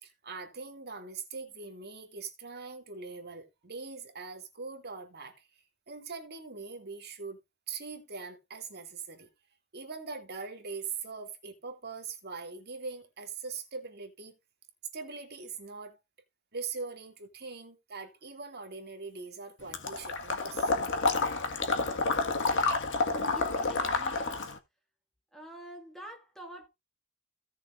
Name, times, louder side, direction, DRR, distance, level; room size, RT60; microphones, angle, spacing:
voice 1, 0.0-5.5 5.9-7.4 7.7-9.3 9.7-14.4 14.9-16.0 16.5-20.7, right 4 dB, 45° right, 2.3 m, -42 dB
Water / Liquid, 19.7-24.6, left 3 dB, 55° left, 1.6 m, -29 dB
voice 2, 23.3-24.6 25.3-26.7, right 1 dB, ahead, 2.0 m, -46 dB
17.0 x 6.6 x 2.5 m
head